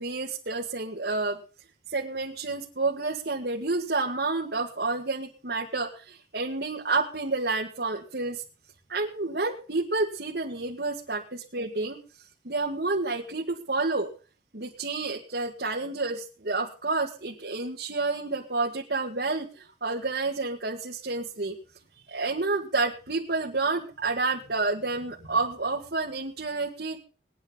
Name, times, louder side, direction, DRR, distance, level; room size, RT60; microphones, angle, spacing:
voice 1, 0.0-1.4 1.9-8.4 8.9-12.0 12.4-14.1 14.5-21.6 22.1-27.0, right 3 dB, 65° right, -1 dB, 2.0 m, -29 dB
20.0 x 9.7 x 5.3 m, 0.37 s
head